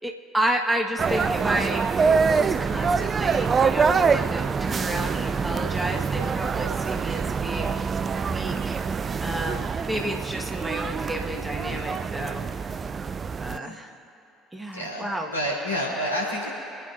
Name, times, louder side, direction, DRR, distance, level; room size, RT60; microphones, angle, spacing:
voice 1, 0.0-1.9 2.4-12.4 13.4-13.9 14.5-15.3, right 1 dB, 10° right, 1 dB, 1.4 m, -31 dB
sound 1, 1.0-13.6, right 5 dB, 30° right, 0.3 m, -25 dB
voice 2, 14.7-16.5, equal, 85° left, -6 dB, 3.6 m, -29 dB
28.5 x 9.9 x 2.6 m, 2.8 s
figure-of-eight pair, 55°, 0 cm